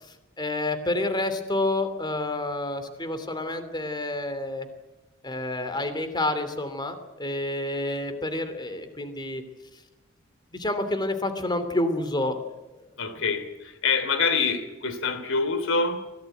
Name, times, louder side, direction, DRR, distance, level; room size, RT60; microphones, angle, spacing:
voice 1, 0.4-4.7 5.2-9.4 10.5-12.4, left 2 dB, 20° left, 2.9 m, -28 dB
voice 2, 13.0-16.1, left 4 dB, 65° left, 3.1 m, -26 dB
24.0 x 16.5 x 9.2 m
head